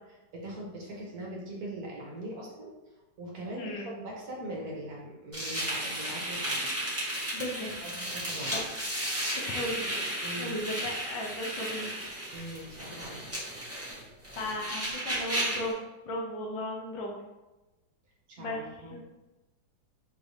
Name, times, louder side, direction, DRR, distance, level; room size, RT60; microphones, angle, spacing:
voice 1, 0.3-2.7 3.2-6.8 7.8-8.6 10.2-10.5 12.3-13.3 18.3-19.0, right 1 dB, 55° right, -2 dB, 1.2 m, -41 dB
voice 2, 3.6-3.9 7.3-7.7 8.5-8.6 9.2-10.0 10.4-12.0 14.4-17.2 18.4-18.6 18.9-19.0, left 1 dB, 75° left, -1 dB, 1.5 m, -36 dB
sound 1, 5.3-15.7, right 1 dB, 10° right, 0.8 m, -34 dB
4.7 x 3.3 x 2.7 m, 1.1 s
omnidirectional pair, 2.2 m